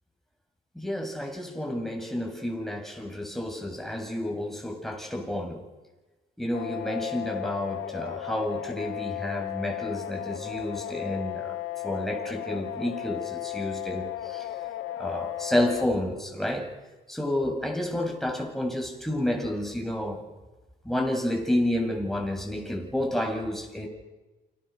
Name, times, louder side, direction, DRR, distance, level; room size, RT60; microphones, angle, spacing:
voice 1, 0.7-5.6 6.4-11.6 11.8-14.5 15.0-16.7 17.1-20.2 20.8-23.9, left 1 dB, ahead, 7.7 m, -30 dB
sound 1, 6.5-15.9, left 14 dB, 85° left, 2.2 m, -35 dB
29.0 x 27.0 x 6.9 m
cardioid pair, 90°, 20 cm